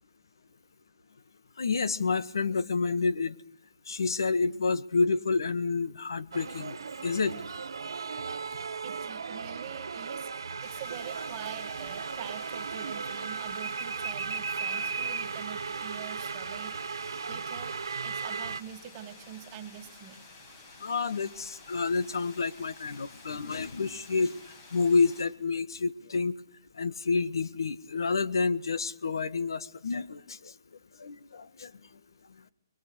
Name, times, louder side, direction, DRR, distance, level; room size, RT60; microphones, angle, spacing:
voice 1, 1.6-3.4 3.9-6.8 7.0-7.3 20.8-24.3 24.7-26.4 26.8-30.5 31.0-31.7, left 4 dB, 75° left, 13 dB, 1.8 m, -29 dB
sound 1, 6.3-18.6, right 5 dB, 80° right, 1.4 m, -36 dB
voice 2, 8.8-17.7 18.0-20.2, right 10 dB, 20° right, 6 dB, 2.2 m, -45 dB
sound 2, 10.6-25.2, left 3 dB, 25° left, 6.1 m, -52 dB
29.5 x 22.5 x 6.4 m, 0.68 s
hypercardioid pair, 165°, 2 cm